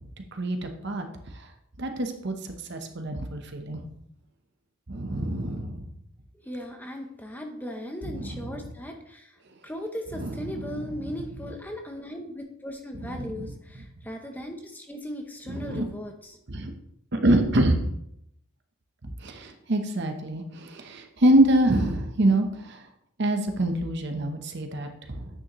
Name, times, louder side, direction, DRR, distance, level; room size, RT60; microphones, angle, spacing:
voice 1, 0.3-1.0 1.8-3.8 4.9-5.8 8.0-8.6 10.2-10.8 13.1-13.3 15.5-15.9 16.5-16.7 17.1-17.8 19.2-22.8 23.2-25.3, right 1 dB, 50° right, 5 dB, 0.9 m, -25 dB
voice 2, 6.4-16.4, left 1 dB, 10° left, 3 dB, 0.7 m, -37 dB
9.3 x 6.2 x 3.1 m, 0.75 s
head